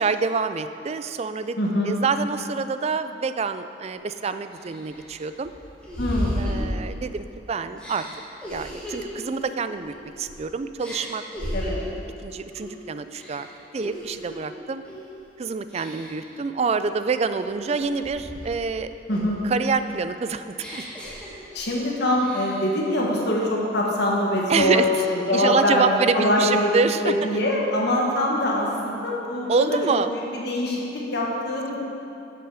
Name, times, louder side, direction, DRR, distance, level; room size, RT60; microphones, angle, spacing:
voice 1, 0.0-1.6 1.8-5.5 6.4-8.1 8.5-11.2 12.2-13.5 13.7-14.8 15.4-18.9 19.4-20.4 20.7-20.8 24.5-24.9 25.3-27.3 29.5-30.1, right 4 dB, 35° right, 11 dB, 0.3 m, -26 dB
voice 2, 1.6-1.9 6.0-6.4 11.5-11.9 19.1-19.4 21.5-24.8 25.1-26.7 27.0-31.8, left 1 dB, 60° left, -3 dB, 1.6 m, -24 dB
sound 1, 3.9-4.0 4.6-7.3 7.8-10.4 10.8-12.0 12.5-12.8 13.1-14.4 14.8-15.2 15.7-16.3 16.8-18.7 19.1-21.8 22.1-22.8, equal, 5° left, 1.9 m, -35 dB
13.5 x 5.9 x 4.8 m, 2.8 s
head